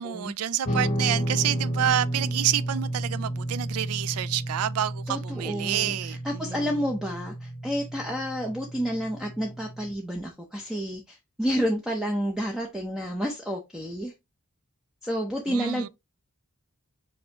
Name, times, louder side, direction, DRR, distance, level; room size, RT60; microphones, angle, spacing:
voice 1, 0.0-6.8 15.5-15.9, right 11 dB, 75° right, 0.3 m, -28 dB
Guitar, 0.6-9.9, right 1 dB, 30° left, 1.0 m, -32 dB
voice 2, 5.1-14.1 15.0-15.9, equal, 5° right, 0.5 m, -30 dB
5.3 x 2.6 x 2.9 m
head